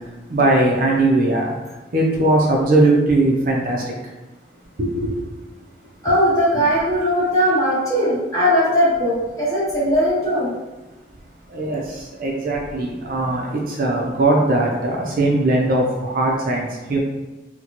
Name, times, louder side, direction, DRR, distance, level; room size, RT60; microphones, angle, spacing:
voice 1, 0.3-1.6 1.9-3.8 4.8-5.2 6.1-6.2 11.5-11.8 12.2-17.0, right 2 dB, 50° right, -1 dB, 0.5 m, -19 dB
voice 2, 6.0-10.5, equal, 20° left, -9 dB, 1.4 m, -19 dB
3.9 x 2.2 x 2.9 m, 1.1 s
head